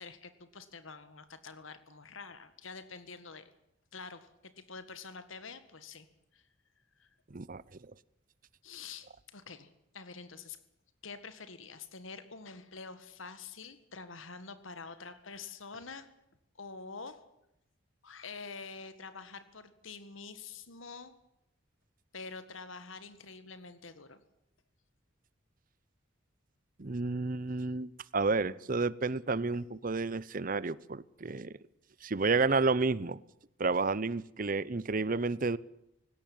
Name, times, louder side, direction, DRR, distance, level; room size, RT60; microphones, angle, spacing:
voice 1, 0.0-3.5 3.9-6.1 6.3-6.4 7.0-7.1 8.6-10.6 11.0-16.1 16.6-17.2 18.0-21.1 22.1-24.2 27.6-27.7, left 4 dB, 80° left, 12 dB, 1.9 m, -47 dB
voice 2, 7.3-7.6 26.8-31.5 32.0-33.2 33.6-35.6, right 3 dB, 45° right, 20 dB, 0.8 m, -31 dB
18.5 x 17.5 x 9.4 m, 0.83 s
head